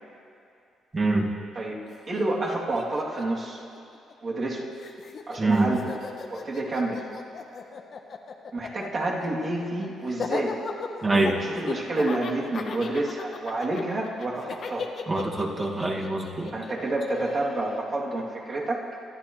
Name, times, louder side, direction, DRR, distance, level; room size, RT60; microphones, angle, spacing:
voice 1, 0.9-1.3 5.4-5.7 11.0-11.4 15.1-16.5, right 2 dB, 30° right, -1 dB, 2.3 m, -24 dB
Laughter, 1.8-1.9 2.1-4.5 4.8-17.8, left 5 dB, 55° left, 1.2 m, -36 dB
voice 2, 2.1-3.6 4.2-4.7 5.3-5.9 6.3-7.0 8.5-10.6 11.4-14.9 16.5-18.8, right 2 dB, 45° right, -5 dB, 3.2 m, -29 dB
25.0 x 11.5 x 3.3 m, 2.6 s
cardioid pair, 90°, 0 cm